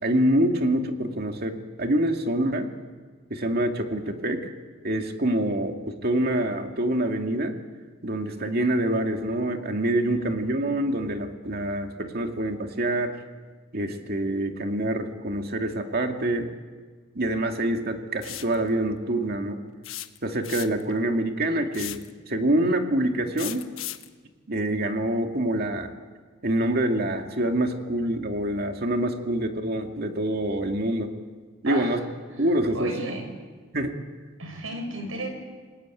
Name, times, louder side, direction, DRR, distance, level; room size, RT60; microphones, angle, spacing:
voice 1, 0.0-2.7 3.3-4.5 4.8-7.6 8.0-13.2 13.7-16.5 17.1-19.6 20.2-22.0 22.3-23.6 24.5-25.9 26.4-31.1 31.6-32.0 32.4-33.1 33.7-34.0, right 1 dB, 50° right, 4 dB, 2.4 m, -26 dB
sound 1, 18.2-18.6 19.8-20.9 21.7-22.1 23.4-24.1, left 13 dB, 80° left, 1.2 m, -36 dB
voice 2, 31.6-32.0 32.7-33.3 34.4-35.3, right 1 dB, 90° right, 5 dB, 6.4 m, -33 dB
29.0 x 19.0 x 9.2 m, 1.5 s
head